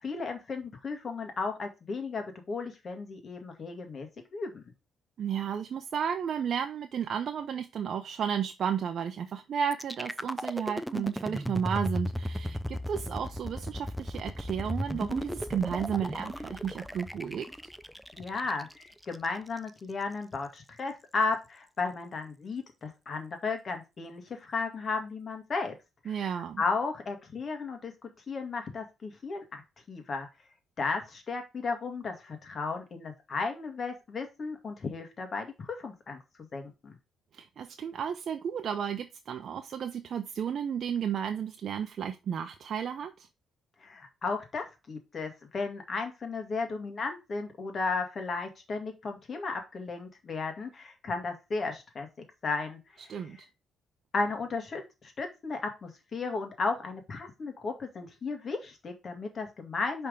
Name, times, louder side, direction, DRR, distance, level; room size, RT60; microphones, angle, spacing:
voice 1, 0.0-4.6 18.2-25.8 26.1-26.2 26.6-29.6 29.9-30.3 30.8-36.2 36.5-36.9 43.8-52.1 52.4-53.1 54.1-60.1, left 4 dB, 45° left, 1.9 m, -34 dB
voice 2, 5.2-17.5 26.1-26.6 37.3-43.3 53.1-53.4, right 8 dB, 60° right, 0.6 m, -33 dB
sound 1, 9.7-19.7, equal, ahead, 0.5 m, -36 dB
5.5 x 3.5 x 5.1 m
cardioid pair, 90°, 0 cm